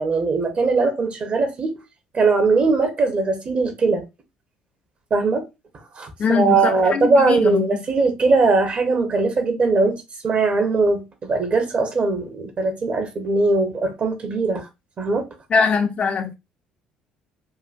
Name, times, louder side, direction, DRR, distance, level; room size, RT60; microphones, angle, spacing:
voice 1, 0.0-1.8 2.1-4.0 5.1-5.5 6.0-14.6 15.0-15.3, right 3 dB, 40° right, 1.0 m, -20 dB
voice 2, 6.2-7.8 15.5-16.3, left 5 dB, 35° left, 0.7 m, -21 dB
3.8 x 2.6 x 2.5 m
figure-of-eight pair, 55°, 3 cm